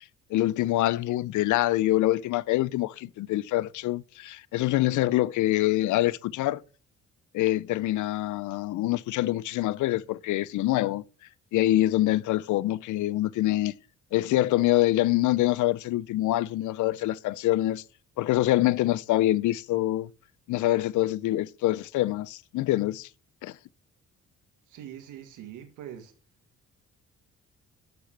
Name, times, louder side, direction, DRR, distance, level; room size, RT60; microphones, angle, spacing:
voice 1, 0.3-6.6 7.3-11.0 11.5-13.7 14.1-17.8 18.2-20.1 20.5-23.1 23.4-23.6, left 15 dB, 75° left, 0.5 m, -25 dB
voice 2, 24.7-26.1, right 10 dB, 90° right, 1.8 m, -43 dB
6.8 x 6.4 x 7.0 m
cardioid pair, 90°, 30 cm